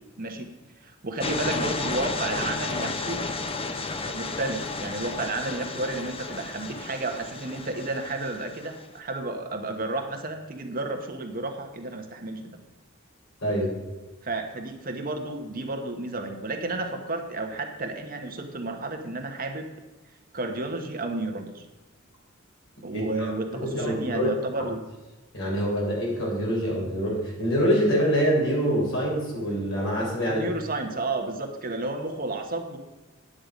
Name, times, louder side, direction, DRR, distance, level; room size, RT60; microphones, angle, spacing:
voice 1, 0.2-0.5 0.8-3.2 4.0-12.6 14.2-19.7 20.3-21.6 22.8-24.8 30.2-32.8, right 2 dB, 45° right, 5 dB, 1.2 m, -32 dB
sound 1, 1.2-8.8, left 3 dB, 25° left, 0.7 m, -33 dB
voice 2, 13.4-13.7 22.9-24.3 25.3-30.4, equal, 65° left, -3 dB, 4.1 m, -25 dB
9.6 x 8.8 x 5.2 m, 1.2 s
head